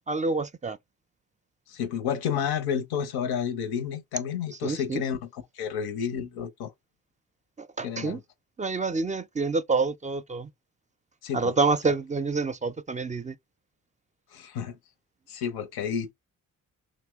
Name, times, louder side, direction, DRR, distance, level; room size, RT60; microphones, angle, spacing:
voice 1, 0.1-0.8 4.6-5.0 7.6-8.2 8.6-10.5 11.3-13.3, right 4 dB, 20° right, 0.3 m, -27 dB
voice 2, 1.7-6.7 7.8-8.2 11.2-11.6 14.3-14.8 15.3-16.1, left 8 dB, 90° left, 0.6 m, -31 dB
2.8 x 2.0 x 3.4 m
supercardioid pair, 45°, 37 cm